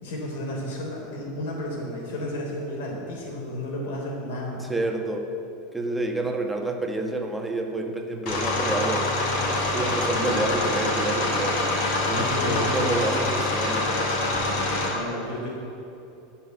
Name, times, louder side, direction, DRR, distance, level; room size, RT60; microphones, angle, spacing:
voice 1, 0.0-4.7 10.0-10.6 12.1-13.2 14.9-15.5, left 1 dB, 80° left, -2 dB, 3.6 m, -32 dB
voice 2, 4.6-5.3 5.7-9.1 9.6-11.7 12.1-14.1, right 2 dB, 5° right, 2 dB, 1.4 m, -29 dB
sound 1, 8.3-14.9, left 2 dB, 60° left, 3.7 m, -25 dB
15.0 x 5.9 x 9.5 m, 2.8 s
supercardioid pair, 135°, 0 cm